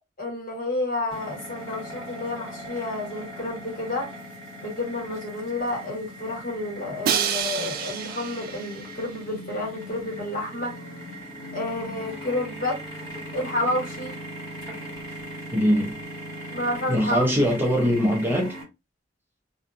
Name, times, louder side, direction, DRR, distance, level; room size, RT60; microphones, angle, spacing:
voice 1, 0.2-4.1 4.6-10.8 11.5-12.8 13.3-14.2 16.5-17.3, left 1 dB, 50° left, 1.5 m, -30 dB
sound 1, 1.1-18.6, equal, 25° left, 1.6 m, -39 dB
Crash cymbal, 7.0-9.1, right 8 dB, 55° right, 0.3 m, -28 dB
voice 2, 15.5-16.0 16.9-18.5, equal, 10° right, 0.7 m, -22 dB
2.6 x 2.3 x 2.4 m
head